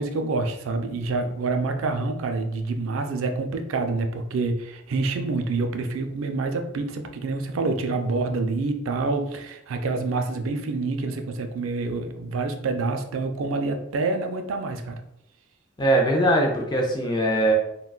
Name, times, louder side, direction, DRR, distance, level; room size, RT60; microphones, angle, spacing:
voice 1, 0.0-15.0, right 3 dB, 75° right, 5 dB, 0.4 m, -27 dB
voice 2, 15.8-17.5, right 1 dB, 20° left, 1 dB, 0.4 m, -21 dB
3.7 x 2.2 x 2.3 m, 0.81 s
head